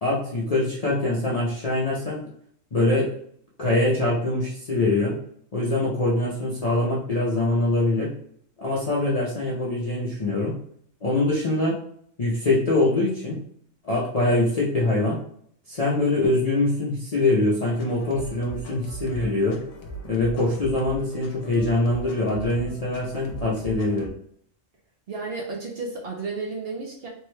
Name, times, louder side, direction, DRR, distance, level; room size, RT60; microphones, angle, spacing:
voice 1, 0.0-2.2 2.7-3.1 3.6-5.2 5.5-8.1 8.6-10.6 11.0-11.8 12.2-13.4 13.8-15.2 15.7-19.6 20.0-24.1, left 2 dB, 45° left, -5 dB, 0.4 m, -23 dB
sound 1, 17.6-24.1, right 2 dB, 75° left, 1.0 m, -39 dB
voice 2, 25.1-27.1, right 3 dB, 55° right, -1 dB, 0.7 m, -32 dB
3.4 x 2.2 x 3.0 m, 0.65 s
omnidirectional pair, 1.4 m